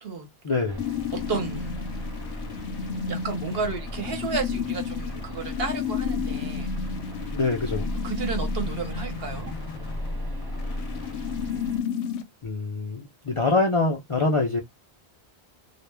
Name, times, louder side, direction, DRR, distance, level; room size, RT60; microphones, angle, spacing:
voice 1, 0.4-0.8 7.3-7.9 10.7-10.8 12.4-14.6, left 3 dB, 40° left, 0.4 m, -25 dB
sound 1, 0.7-11.8, equal, 35° right, 0.4 m, -35 dB
sound 2, 0.8-12.2, left 8 dB, 80° left, 0.8 m, -33 dB
voice 2, 1.1-1.8 3.1-6.7 8.0-9.5, right 5 dB, 65° right, 1.0 m, -32 dB
2.4 x 2.1 x 3.2 m
omnidirectional pair, 1.1 m